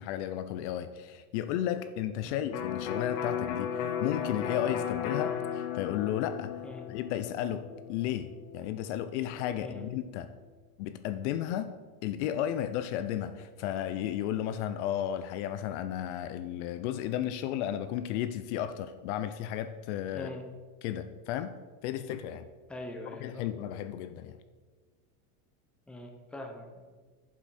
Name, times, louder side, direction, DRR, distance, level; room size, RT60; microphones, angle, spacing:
voice 1, 0.0-6.6 6.9-10.3 10.8-11.7 12.0-20.3 20.8-21.5 21.8-22.5 23.2-24.4, left 11 dB, 50° left, 11 dB, 0.5 m, -33 dB
Electric guitar, 2.5-10.2, left 8 dB, 65° left, 1.1 m, -36 dB
voice 2, 20.1-20.5 22.7-23.5 25.9-26.8, left 1 dB, ahead, 3 dB, 0.7 m, -43 dB
9.6 x 7.4 x 4.2 m, 1.4 s
supercardioid pair, 150°, 45 cm